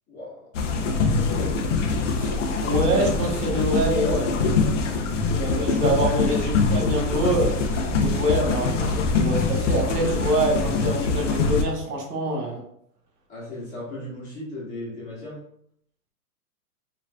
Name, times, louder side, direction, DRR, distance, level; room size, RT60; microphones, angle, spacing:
sound 1, 0.5-11.6, left 4 dB, 50° left, 0.8 m, -24 dB
voice 1, 0.8-1.6 13.3-15.4, left 1 dB, 15° left, -6 dB, 1.4 m, -36 dB
voice 2, 2.6-4.3 5.3-12.6, right 1 dB, 75° right, 1 dB, 1.7 m, -25 dB
7.2 x 3.1 x 2.3 m, 0.70 s
hypercardioid pair, 160°, 47 cm